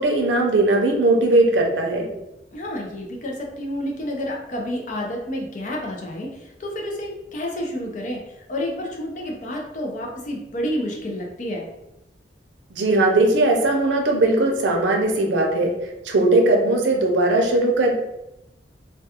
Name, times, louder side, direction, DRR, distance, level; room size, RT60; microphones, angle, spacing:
voice 1, 0.0-2.1 12.7-15.7 16.0-17.9, right 2 dB, 85° right, 1 dB, 0.5 m, -19 dB
voice 2, 2.5-11.7, left 1 dB, 45° left, 0 dB, 0.5 m, -30 dB
2.3 x 2.2 x 2.8 m, 0.90 s
head